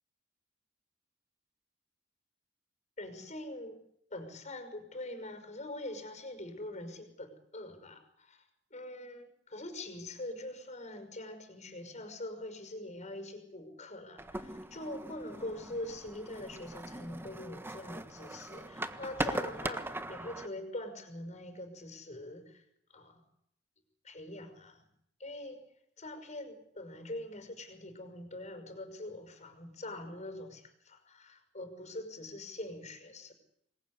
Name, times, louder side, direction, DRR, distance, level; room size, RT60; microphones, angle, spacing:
voice 1, 3.0-3.8 4.1-8.4 8.7-22.6 22.9-23.2 24.0-24.9 25.2-25.6 26.0-33.3, left 1 dB, 40° left, 9 dB, 5.8 m, -43 dB
sound 1, 14.2-20.5, right 1 dB, 10° right, 1.4 m, -40 dB
26.5 x 21.0 x 9.8 m, 0.75 s
head